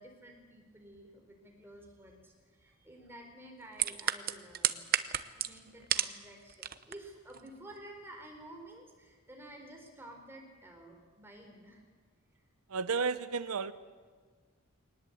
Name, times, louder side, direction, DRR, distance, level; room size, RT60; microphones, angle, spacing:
voice 1, 0.0-4.9 5.3-11.8, right 1 dB, 10° right, 2 dB, 4.2 m, -52 dB
sound 1, 3.7-6.2 6.5-7.0 7.3-7.5, right 11 dB, 40° right, 0.8 m, -31 dB
voice 2, 12.7-13.7, right 5 dB, 85° right, 13 dB, 0.8 m, -32 dB
23.0 x 19.5 x 8.6 m, 1.5 s
head